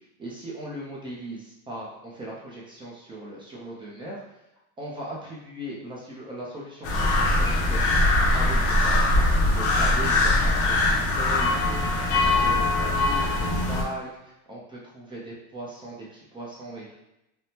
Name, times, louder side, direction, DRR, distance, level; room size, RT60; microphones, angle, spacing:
voice 1, 0.2-4.2 4.8-7.8 8.3-16.9, right 1 dB, 15° right, -5 dB, 0.5 m, -38 dB
sound 1, 6.8-13.8, left 2 dB, 45° left, 0.6 m, -22 dB
3.4 x 2.0 x 2.8 m, 0.88 s
supercardioid pair, 150°, 33 cm